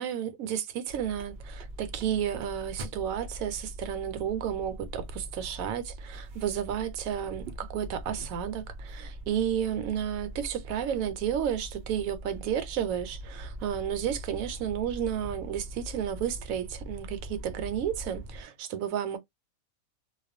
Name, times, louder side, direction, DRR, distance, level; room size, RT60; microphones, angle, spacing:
voice 1, 0.0-19.2, right 9 dB, 75° right, 1.0 m, -32 dB
sound 1, 0.9-18.4, right 1 dB, 60° right, 0.7 m, -42 dB
2.4 x 2.2 x 2.5 m
omnidirectional pair, 1.5 m